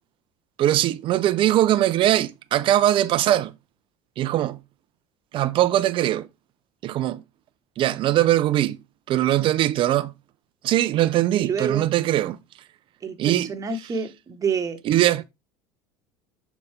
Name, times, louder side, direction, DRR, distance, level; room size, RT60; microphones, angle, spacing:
voice 1, 0.6-3.5 4.2-4.6 5.3-6.3 6.8-7.2 7.8-8.8 9.1-10.1 10.6-12.4 13.2-13.5 14.9-15.2, right 13 dB, 50° right, 0.5 m, -21 dB
voice 2, 11.3-11.9 13.0-14.8, right 5 dB, 30° right, 1.1 m, -28 dB
7.0 x 4.1 x 3.4 m
supercardioid pair, 95°, 11 cm